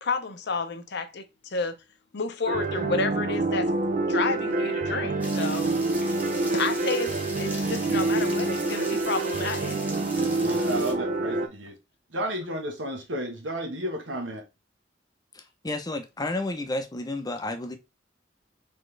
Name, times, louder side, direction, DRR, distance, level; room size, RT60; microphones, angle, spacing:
voice 1, 0.0-1.8 2.1-3.7 4.1-5.8 6.3-9.8, left 4 dB, 65° left, 0.7 m, -31 dB
sound 1, 2.5-11.5, right 2 dB, 45° right, 0.6 m, -27 dB
sound 2, 5.2-10.9, right 1 dB, 10° right, 1.2 m, -40 dB
voice 2, 10.2-11.8 12.1-14.4, equal, 85° right, 1.3 m, -33 dB
voice 3, 15.3-17.8, left 2 dB, 20° left, 0.7 m, -31 dB
4.2 x 3.7 x 3.3 m
head